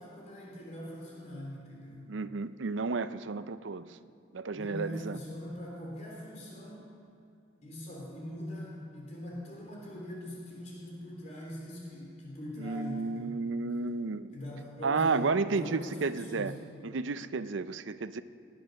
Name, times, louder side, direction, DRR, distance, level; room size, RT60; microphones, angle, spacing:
voice 1, 0.0-2.1 4.5-6.9 7.6-13.4 14.3-16.5, equal, 35° left, -3 dB, 3.4 m, -42 dB
voice 2, 2.1-4.0 4.3-5.2 12.6-14.4 14.8-16.5 16.8-18.2, right 4 dB, 80° right, 13 dB, 0.6 m, -32 dB
19.0 x 10.5 x 6.4 m, 2.6 s
head